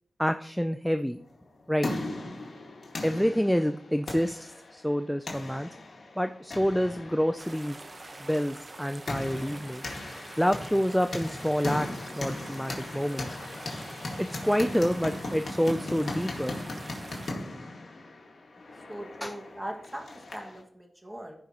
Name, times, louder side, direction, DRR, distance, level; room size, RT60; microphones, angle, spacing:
voice 1, 0.2-1.2 1.7-1.9 3.0-5.7 6.2-7.8 8.2-9.8 10.4-13.4 14.2-16.6 19.2-19.3, equal, ahead, 8 dB, 0.4 m, -28 dB
sound 1, 1.4-20.6, left 2 dB, 70° left, 1.9 m, -38 dB
sound 2, 7.4-17.3, right 2 dB, 45° right, 1.1 m, -46 dB
voice 2, 18.9-21.4, right 1 dB, 20° right, 2 dB, 1.9 m, -40 dB
15.5 x 5.4 x 3.0 m, 0.65 s
cardioid pair, 65°, 0 cm